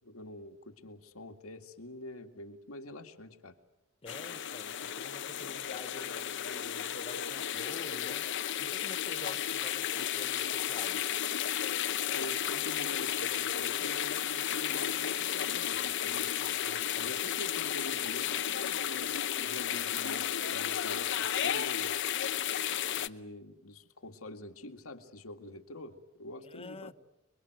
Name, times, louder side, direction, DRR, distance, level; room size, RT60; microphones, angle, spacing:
voice 1, 0.0-3.6 12.1-16.3 16.9-22.1 22.9-26.9, left 1 dB, 85° left, 2.2 m, -46 dB
voice 2, 4.0-8.3 8.6-11.1 16.3-17.1 26.4-26.9, left 3 dB, 30° left, 1.0 m, -48 dB
sound 1, 4.1-23.1, left 10 dB, 60° left, 0.9 m, -33 dB
29.5 x 22.0 x 8.0 m
head